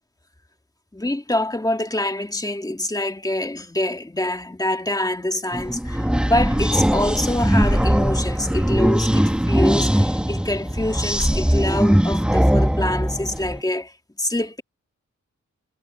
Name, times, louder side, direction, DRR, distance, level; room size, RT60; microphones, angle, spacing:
voice 1, 0.9-13.9 14.2-14.6, left 1 dB, 10° left, 2.1 m, -25 dB
sound 1, 5.5-13.6, equal, 5° right, 1.0 m, -20 dB
wide cardioid pair, 95°, 30 cm